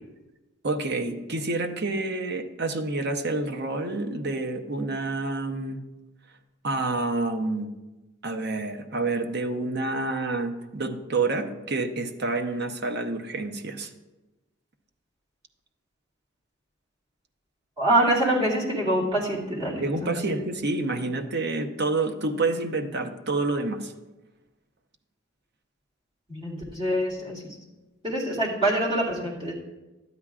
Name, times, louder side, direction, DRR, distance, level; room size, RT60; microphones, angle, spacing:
voice 1, 0.6-5.8 6.6-7.7 8.2-13.9 19.8-23.9, right 2 dB, 50° right, 5 dB, 0.8 m, -28 dB
voice 2, 17.8-20.1 26.3-27.5 28.0-29.5, right 1 dB, 25° right, -6 dB, 2.5 m, -25 dB
12.5 x 9.7 x 2.4 m, 1.1 s
head